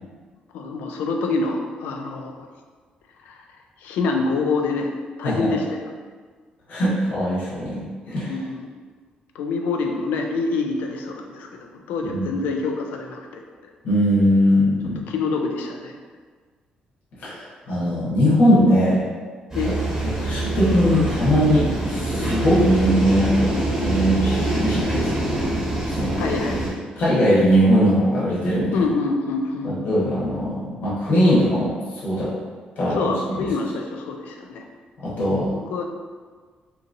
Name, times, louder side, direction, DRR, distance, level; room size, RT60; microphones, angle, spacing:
voice 1, 0.5-2.3 3.3-3.4 3.8-4.9 5.2-5.8 8.3-8.7 9.3-13.4 15.1-15.9 19.5-19.9 26.2-26.6 28.7-29.8 32.9-34.7 35.5-35.8, left 3 dB, 90° left, 3 dB, 0.3 m, -26 dB
voice 2, 6.7-7.8 8.1-8.3 12.1-12.3 13.8-15.0 17.2-19.0 20.0-25.1 25.9-26.2 27.0-28.7 29.6-31.8 32.0-32.3 32.8-33.5 35.0-35.5, equal, 65° left, -9 dB, 1.0 m, -20 dB
sound 1, 19.5-26.7, right 2 dB, 15° right, 0.9 m, -24 dB
2.7 x 2.7 x 2.5 m, 1.5 s
cardioid pair, 90°, 3 cm